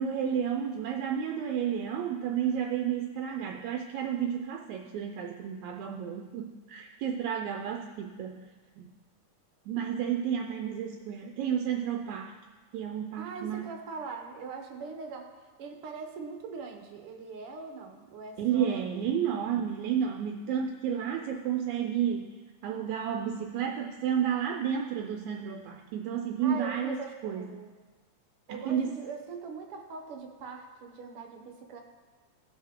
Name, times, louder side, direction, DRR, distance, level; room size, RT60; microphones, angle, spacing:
voice 1, 0.0-8.5 8.8-8.9 9.7-12.3 12.7-13.7 18.4-22.3 22.6-27.0 27.2-27.4 28.5-28.9, right 8 dB, 80° right, 2 dB, 1.9 m, -31 dB
voice 2, 13.2-15.3 15.6-18.8 26.4-27.7 28.5-31.8, right 5 dB, 65° right, 3 dB, 1.5 m, -41 dB
16.0 x 5.4 x 3.6 m, 1.3 s
omnidirectional pair, 3.4 m